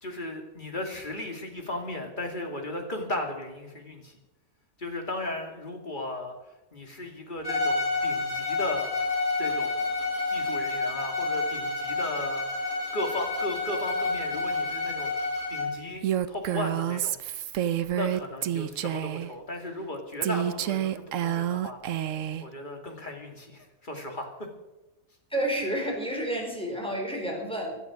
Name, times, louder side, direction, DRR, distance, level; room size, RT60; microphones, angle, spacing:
voice 1, 0.0-4.2 4.8-6.4 6.7-8.9 9.4-9.9 10.3-15.1 15.5-17.1 17.9-21.8 22.4-24.5, left 2 dB, 35° left, 3 dB, 2.7 m, -36 dB
Bowed string instrument, 7.4-15.8, left 3 dB, 65° left, 5.3 m, -29 dB
Female speech woman speaking, 16.0-19.3 20.2-22.4, right 11 dB, 65° right, 1.0 m, -28 dB
voice 2, 25.3-27.8, right 1 dB, 5° left, 0 dB, 4.4 m, -30 dB
16.5 x 12.0 x 6.3 m, 1.0 s
omnidirectional pair, 1.5 m